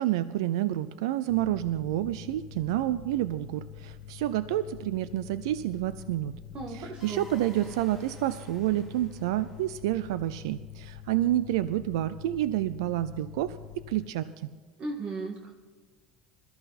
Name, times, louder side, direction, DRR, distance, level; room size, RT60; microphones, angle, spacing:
voice 1, 0.0-6.3 6.7-13.6 13.9-14.3, right 14 dB, 90° right, 14 dB, 0.5 m, -29 dB
Mechanical fan, 1.3-14.1, left 11 dB, 75° left, 1.6 m, -46 dB
voice 2, 6.5-7.3 14.8-15.5, right 3 dB, 40° right, 2 dB, 2.0 m, -36 dB
sound 1, 7.0-10.1, left 1 dB, 10° right, 4.8 m, -54 dB
21.5 x 14.0 x 4.2 m, 1.3 s
supercardioid pair, 115°, 3 cm